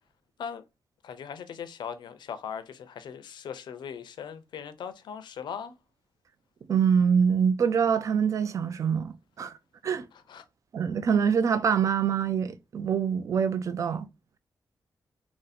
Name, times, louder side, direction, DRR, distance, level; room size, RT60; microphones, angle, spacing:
voice 1, 1.0-5.7 10.3-10.4, left 7 dB, 85° left, 0.5 m, -39 dB
voice 2, 6.7-9.5 9.8-10.1 10.7-14.1, right 7 dB, 45° right, 0.4 m, -25 dB
2.9 x 2.6 x 4.1 m
wide cardioid pair, 175°, 8 cm